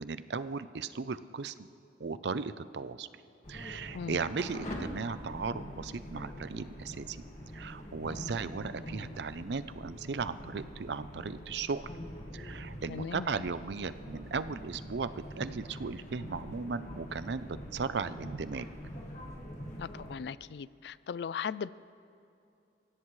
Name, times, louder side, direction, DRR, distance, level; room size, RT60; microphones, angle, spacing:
voice 1, 0.0-1.7 2.0-3.1 3.5-7.2 7.5-11.8 12.3-18.7, right 4 dB, 75° right, 14 dB, 0.5 m, -36 dB
sound 1, 3.4-20.2, equal, 40° left, 1.9 m, -44 dB
voice 2, 12.9-13.3 19.8-21.7, left 6 dB, 70° left, 19 dB, 0.3 m, -38 dB
24.0 x 16.5 x 3.2 m, 2.6 s
head